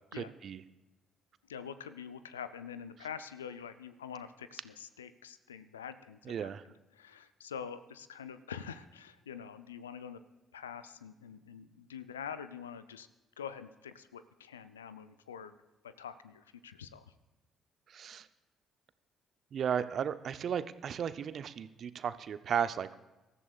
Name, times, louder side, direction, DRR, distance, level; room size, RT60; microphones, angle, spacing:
voice 1, 0.1-0.6 6.3-6.6 17.9-18.3 19.5-22.9, right 8 dB, 55° right, 13 dB, 0.6 m, -35 dB
voice 2, 1.5-6.5 6.9-10.2 10.5-13.1 13.4-15.6 15.8-17.1, left 7 dB, 85° left, 13 dB, 0.5 m, -45 dB
23.5 x 14.0 x 2.4 m, 1.0 s
figure-of-eight pair, 45°, 0 cm